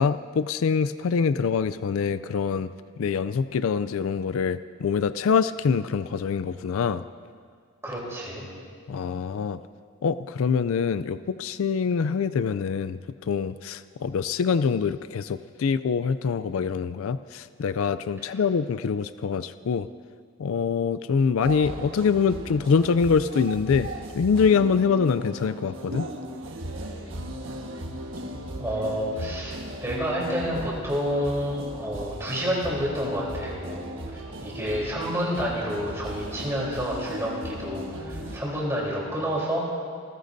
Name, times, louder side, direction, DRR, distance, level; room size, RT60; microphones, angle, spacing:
voice 1, 0.0-2.7 3.0-7.0 8.9-9.6 10.0-13.0 13.3-19.9 20.4-26.1, left 5 dB, 75° left, 14 dB, 0.4 m, -25 dB
voice 2, 7.8-8.5 18.3-18.4 28.6-39.7, equal, 15° right, -5 dB, 3.5 m, -29 dB
sound 1, 21.4-38.4, right 1 dB, 65° right, 1.4 m, -37 dB
29.5 x 15.0 x 2.7 m, 2.1 s
head